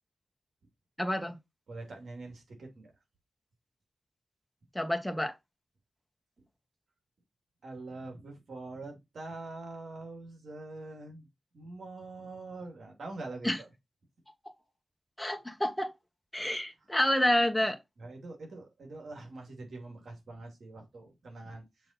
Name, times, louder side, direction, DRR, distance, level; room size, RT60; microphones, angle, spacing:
voice 1, 1.0-1.4 4.7-5.3 13.4-13.6 15.2-15.9 16.3-17.8, left 1 dB, 5° left, 1.8 m, -28 dB
voice 2, 1.7-2.9 7.6-11.3 11.5-13.7 18.0-21.9, right 2 dB, 80° right, 2.6 m, -44 dB
7.2 x 3.8 x 4.3 m
cardioid pair, 45°, 0 cm